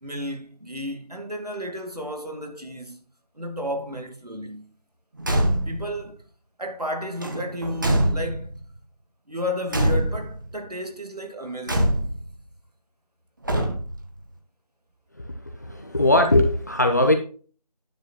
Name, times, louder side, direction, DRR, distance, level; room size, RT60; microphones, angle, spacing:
voice 1, 0.0-3.0 3.4-4.7 5.7-6.2 6.6-8.6 9.3-12.1, left 1 dB, 80° right, 2.4 m, -32 dB
Car / Truck / Slam, 5.2-5.9 7.2-8.6 9.7-10.5 11.7-12.3 13.4-14.1, right 1 dB, 30° right, 1.5 m, -24 dB
voice 2, 15.8-17.1, left 1 dB, 25° left, 0.9 m, -19 dB
10.0 x 8.6 x 3.0 m
figure-of-eight pair, 165°, 20 cm